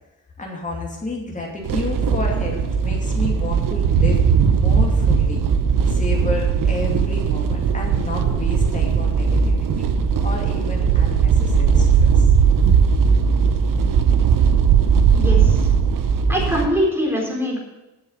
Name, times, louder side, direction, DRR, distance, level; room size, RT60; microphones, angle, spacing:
voice 1, 0.4-4.2 4.6-5.5 5.9-9.9 10.2-11.9 12.1-12.4, left 2 dB, 20° left, -2 dB, 2.6 m, -30 dB
sound 1, 1.6-16.7, right 6 dB, 75° right, 1.0 m, -18 dB
voice 2, 15.1-15.6 16.3-17.6, equal, 5° right, -3 dB, 4.1 m, -22 dB
8.2 x 7.1 x 8.5 m, 1.0 s
cardioid pair, 95°, 33 cm